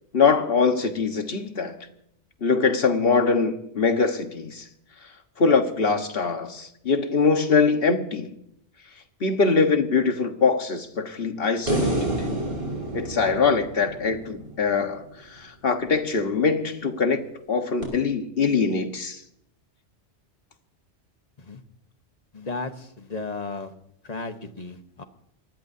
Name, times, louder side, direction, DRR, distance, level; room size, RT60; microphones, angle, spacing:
voice 1, 0.1-1.8 2.4-4.6 5.4-8.3 9.2-12.3 12.9-15.0 15.3-17.2 17.5-19.2, left 4 dB, 55° left, 1.6 m, -23 dB
sound 1, 11.7-15.0 17.8-17.9, right 1 dB, 60° right, 5.6 m, -29 dB
voice 2, 22.3-23.7 24.0-25.0, left 3 dB, 35° left, 1.2 m, -34 dB
25.0 x 19.5 x 2.8 m
omnidirectional pair, 1.2 m